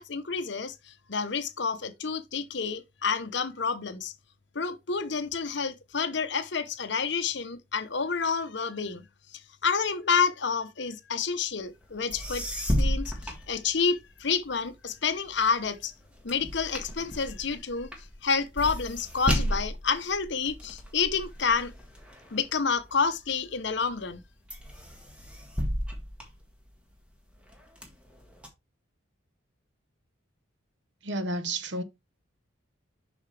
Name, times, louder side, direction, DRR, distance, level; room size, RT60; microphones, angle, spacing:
voice 1, 0.0-4.1 4.5-9.0 9.6-15.9 16.2-17.9 18.2-21.7 22.3-24.2, left 5 dB, 55° left, 0.8 m, -29 dB
sound 1, 11.8-11.9 12.1-14.2 14.7-23.3 23.8-24.2 24.5-27.0 27.5-28.5, equal, 5° right, 1.6 m, -33 dB
voice 2, 31.0-31.8, right 1 dB, 60° right, 0.9 m, -31 dB
7.2 x 5.9 x 3.3 m
head